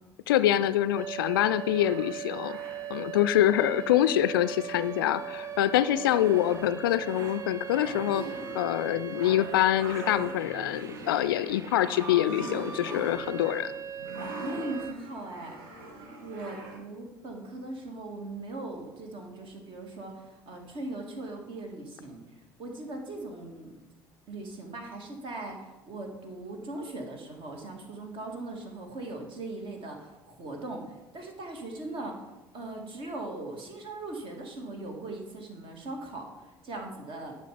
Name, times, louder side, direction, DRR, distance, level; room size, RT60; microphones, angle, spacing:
voice 1, 0.3-2.6 2.9-8.2 8.5-13.7, left 12 dB, 70° left, 14 dB, 0.4 m, -25 dB
sound 1, 1.0-14.9, right 8 dB, 25° right, 0.6 m, -40 dB
sound 2, 1.5-16.8, right 1 dB, 65° right, 1.7 m, -43 dB
voice 2, 14.4-15.7 16.2-22.2 22.6-23.7 24.3-32.3 32.5-37.4, right 2 dB, 45° right, 2 dB, 2.0 m, -39 dB
11.0 x 5.3 x 5.1 m, 1.0 s
figure-of-eight pair, 60°, 12 cm